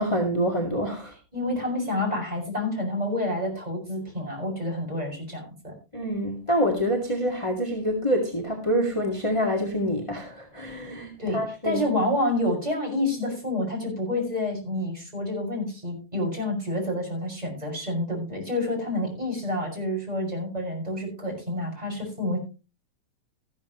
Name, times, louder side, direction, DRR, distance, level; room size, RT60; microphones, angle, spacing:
voice 1, 0.0-1.1 5.9-11.8, equal, 15° left, 0 dB, 1.3 m, -26 dB
voice 2, 1.3-5.7 11.2-22.4, left 1 dB, 10° right, -1 dB, 5.8 m, -28 dB
14.0 x 12.5 x 3.0 m, 0.30 s
omnidirectional pair, 3.8 m